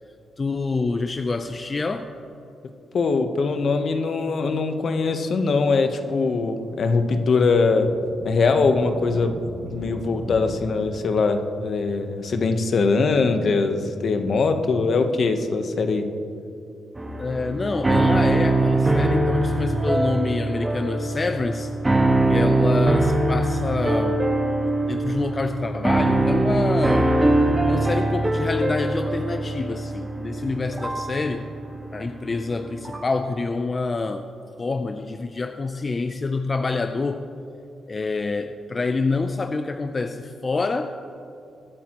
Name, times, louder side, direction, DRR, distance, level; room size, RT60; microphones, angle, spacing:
voice 1, 0.4-2.1 17.2-21.7 22.3-24.2 24.9-27.1 27.7-31.5 31.9-34.3 34.6-37.2 37.9-40.9, left 3 dB, 35° left, 8 dB, 0.5 m, -27 dB
voice 2, 2.9-16.1, left 4 dB, 60° left, 7 dB, 0.9 m, -22 dB
sound 1, 7.6-11.3, right 1 dB, 65° right, 2.6 m, -38 dB
sound 2, 17.0-33.2, right 2 dB, 20° right, 1.4 m, -22 dB
23.0 x 8.5 x 3.0 m, 2.7 s
cardioid pair, 90°, 0 cm